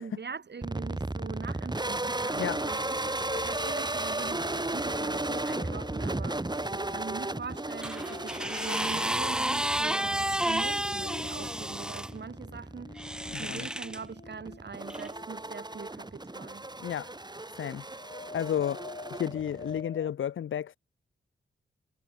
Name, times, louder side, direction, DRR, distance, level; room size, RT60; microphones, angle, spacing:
voice 1, 0.0-2.8 3.3-16.7, right 5 dB, 60° right, 3.9 m, -42 dB
sound 1, 0.6-19.8, right 2 dB, 20° right, 4.3 m, -35 dB
sound 2, 2.3-16.4 17.9-20.1, left 3 dB, 40° left, 6.8 m, -46 dB
sound 3, 7.8-12.1 13.0-14.0 14.9-15.1, right 1 dB, 5° right, 0.5 m, -31 dB
voice 2, 16.8-17.1 17.6-17.8 18.3-20.8, left 9 dB, 80° left, 0.8 m, -32 dB
cardioid pair, 60°, 20 cm